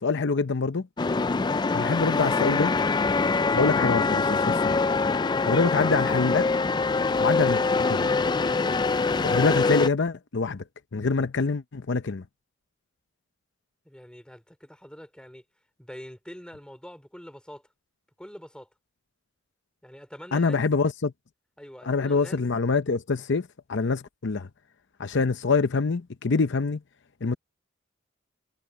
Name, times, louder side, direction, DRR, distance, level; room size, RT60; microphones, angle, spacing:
voice 1, 0.0-0.9 1.7-2.8 3.5-4.7 5.4-6.5 7.2-8.1 9.2-10.6 10.9-12.2 20.3-21.1 21.8-24.5 25.0-26.8 27.2-27.3, left 4 dB, 65° left, 0.7 m, -25 dB
sound 1, 1.0-9.9, left 4 dB, 20° left, 0.4 m, -24 dB
voice 2, 13.8-15.4 15.8-17.6 18.2-18.7 19.8-20.6 21.6-22.4, equal, 5° left, 4.2 m, -44 dB
head